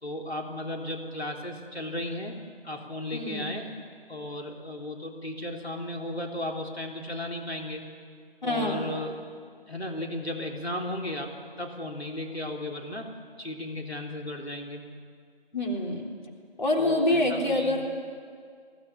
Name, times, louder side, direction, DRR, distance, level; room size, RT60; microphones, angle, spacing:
voice 1, 0.0-3.7 4.1-7.8 8.4-9.1 9.7-13.1 13.4-14.8 16.8-17.8, left 1 dB, 90° left, 1 dB, 3.4 m, -35 dB
voice 2, 3.1-3.6 8.4-8.9 15.5-16.1 16.6-18.2, left 1 dB, 50° left, -1 dB, 3.6 m, -27 dB
22.5 x 17.5 x 9.9 m, 2.1 s
figure-of-eight pair, 170°, 30 cm